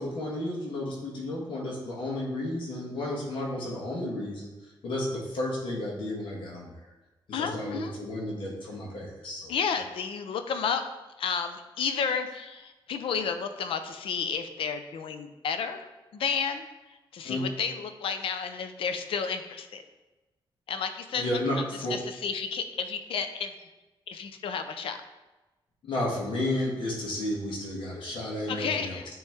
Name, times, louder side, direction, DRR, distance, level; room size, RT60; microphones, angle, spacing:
voice 1, 0.0-4.5 4.8-6.7 7.3-9.5 17.2-17.4 21.1-21.9 25.8-29.0, left 1 dB, 65° left, -4 dB, 1.4 m, -32 dB
voice 2, 7.3-8.0 9.5-10.8 11.2-15.9 16.1-16.6 17.1-19.8 20.7-21.4 21.7-23.5 24.1-25.0 28.5-29.1, left 6 dB, 85° left, 8 dB, 0.5 m, -31 dB
9.1 x 3.1 x 3.5 m, 1.1 s
wide cardioid pair, 165°, 9 cm